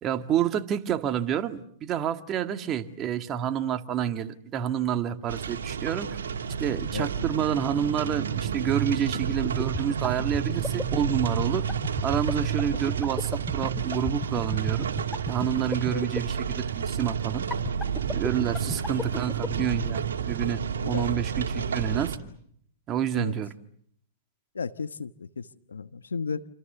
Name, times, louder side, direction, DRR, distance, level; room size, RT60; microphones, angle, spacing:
voice 1, 0.0-6.2 6.6-11.6 12.0-14.9 15.3-17.5 18.1-22.2 22.9-23.5, right 9 dB, 30° right, 1.9 m, -29 dB
sound 1, 5.3-22.2, right 7 dB, 80° right, 2.6 m, -30 dB
sound 2, 9.1-16.2 17.5-19.6, left 3 dB, 10° left, 2.4 m, -31 dB
voice 2, 20.8-21.1 21.6-21.7 23.1-23.3 24.5-26.5, left 5 dB, 90° left, 1.1 m, -34 dB
28.5 x 26.5 x 6.9 m
hypercardioid pair, 115°, 0 cm